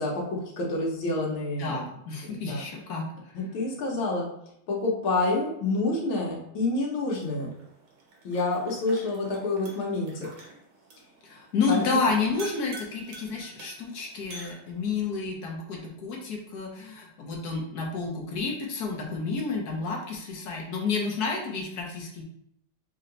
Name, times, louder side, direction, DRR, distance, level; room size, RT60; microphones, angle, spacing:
voice 1, 0.0-1.8 2.3-2.7 3.3-4.3 4.7-7.5 8.2-10.3 11.7-12.0, left 2 dB, 85° left, -2 dB, 1.8 m, -28 dB
voice 2, 1.6-3.4 11.2-22.2, left 4 dB, 60° left, 0 dB, 1.2 m, -30 dB
sound 1, 7.1-15.1, right 2 dB, 85° right, 2.0 m, -46 dB
4.3 x 2.8 x 3.8 m, 0.75 s
omnidirectional pair, 2.2 m